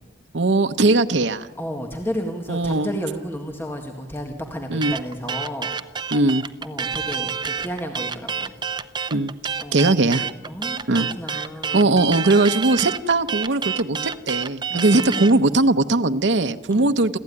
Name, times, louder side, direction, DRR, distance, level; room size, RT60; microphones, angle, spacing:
voice 1, 0.3-1.5 2.5-2.9 4.7-4.9 6.1-6.5 9.1-9.3 9.7-10.2 10.9-11.1 11.7-17.2, right 2 dB, 75° right, 8 dB, 0.8 m, -19 dB
voice 2, 1.6-5.7 6.6-8.5 9.6-9.8 10.5-11.9 14.7-15.6 16.7-16.9, equal, 15° left, 3 dB, 1.8 m, -32 dB
sound 1, 4.8-15.4, right 6 dB, 25° right, 0.8 m, -28 dB
28.0 x 14.5 x 9.8 m, 1.2 s
head